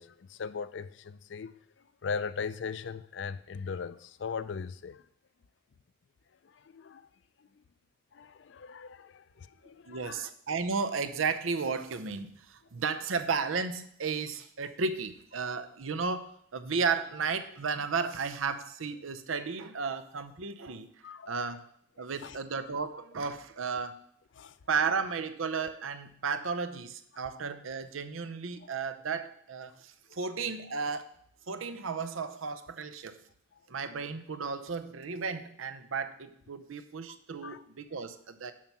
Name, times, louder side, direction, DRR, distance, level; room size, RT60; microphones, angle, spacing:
voice 1, 0.0-1.5 2.0-5.0 6.5-7.0 8.1-10.3 21.0-21.4 22.2-22.4 24.3-24.6 33.8-33.9 37.4-37.6, left 5 dB, 60° left, 15 dB, 0.4 m, -39 dB
voice 2, 9.9-20.9 21.3-21.6 22.0-24.0 24.7-31.1 31.5-33.2 33.7-38.5, right 5 dB, 85° right, 10 dB, 0.7 m, -34 dB
7.3 x 5.5 x 6.0 m, 0.69 s
head